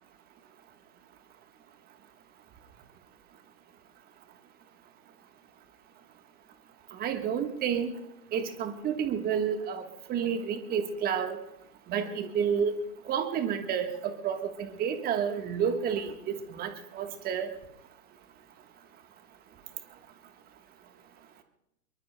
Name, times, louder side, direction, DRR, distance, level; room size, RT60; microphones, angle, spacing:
voice 1, 7.0-7.9 8.3-11.4 11.9-12.8 13.1-17.5, right 7 dB, 20° right, 7 dB, 1.3 m, -30 dB
25.5 x 22.5 x 2.2 m, 0.87 s
hypercardioid pair, 125°, 49 cm